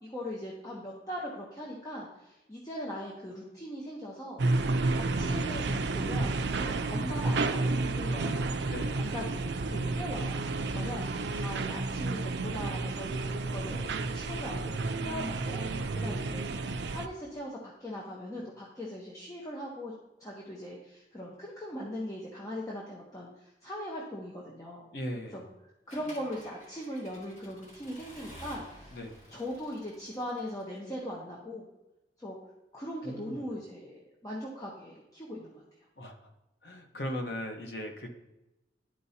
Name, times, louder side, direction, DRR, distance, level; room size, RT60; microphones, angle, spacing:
voice 1, 0.0-8.5 8.9-10.4 10.7-15.6 15.9-16.5 16.9-19.9 20.2-24.9 25.3-25.4 25.9-29.0 29.3-31.7 32.2-32.4 32.7-35.6, equal, 20° left, -4 dB, 0.9 m, -40 dB
sound 1, 4.4-17.1, right 3 dB, 70° right, 0.4 m, -31 dB
voice 2, 8.6-9.0 10.8-10.9 24.9-25.4 28.9-29.2 33.0-33.4 36.0-36.3 36.6-38.1, equal, 60° left, 4 dB, 1.0 m, -39 dB
Accelerating revving vroom / Mechanisms, 25.9-30.8, equal, 45° left, 2.1 m, -51 dB
11.5 x 4.6 x 2.8 m, 0.97 s
head